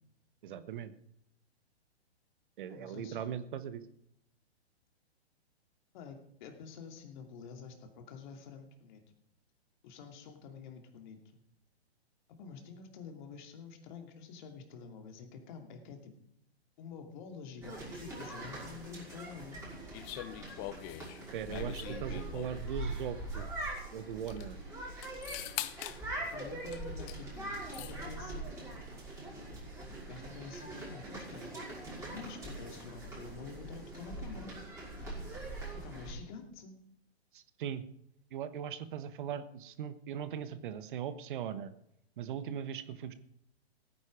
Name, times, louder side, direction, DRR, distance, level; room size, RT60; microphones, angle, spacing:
voice 1, 0.4-0.9 2.6-3.8 21.3-23.5 23.9-24.6 37.3-37.8 38.3-41.7 42.2-43.1, right 9 dB, 50° right, 13 dB, 1.1 m, -39 dB
voice 2, 2.7-3.3 5.9-9.0 9.8-11.4 12.3-16.1 16.8-19.6 26.3-28.6 30.0-31.5 32.1-34.6 35.8-36.8, left 5 dB, 45° left, 5 dB, 2.8 m, -48 dB
sound 1, 17.6-36.1, right 2 dB, 10° right, 5.9 m, -42 dB
sound 2, 19.9-22.7 23.8-23.9 24.1-24.5 25.0-26.0 26.7-27.2 27.5-28.0, left 15 dB, 25° left, 0.6 m, -43 dB
16.5 x 9.7 x 5.0 m, 0.74 s
hypercardioid pair, 125°, 33 cm